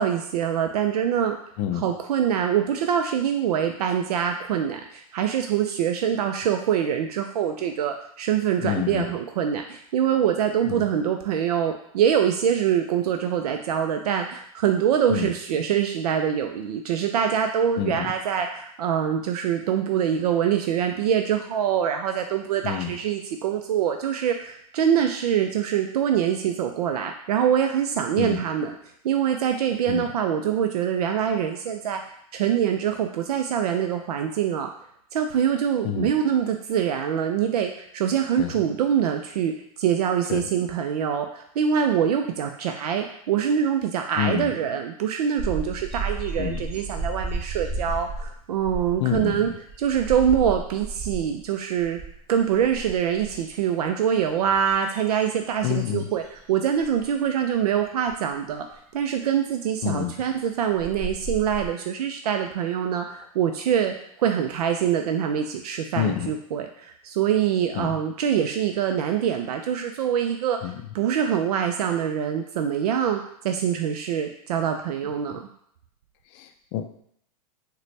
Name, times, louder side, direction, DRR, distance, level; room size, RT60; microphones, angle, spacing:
voice 1, 0.0-1.4 1.7-28.8 29.0-32.0 32.3-34.7 35.1-39.5 39.8-49.5 49.8-52.0 52.3-58.7 58.9-75.4, right 8 dB, 80° right, 4 dB, 0.4 m, -24 dB
voice 2, 8.6-9.0 10.7-10.9 15.1-15.3 17.8-18.1 22.6-22.9 28.2-28.4 29.9-30.1 35.8-36.1 38.4-38.6 40.3-40.5 44.2-44.5 46.4-46.6 49.0-49.5 55.6-56.1 59.8-60.1 66.0-66.3 67.8-67.9 70.6-70.8 76.3-77.0, left 11 dB, 50° left, 7 dB, 0.4 m, -28 dB
sound 1, 45.4-51.4 51.8-52.2 52.5-53.5 54.1-56.4 56.8-57.0 58.1-58.2 60.3-60.4 60.8-61.7, right 2 dB, 40° right, 1.0 m, -33 dB
4.0 x 2.2 x 3.1 m, 0.70 s
hypercardioid pair, 120°, 19 cm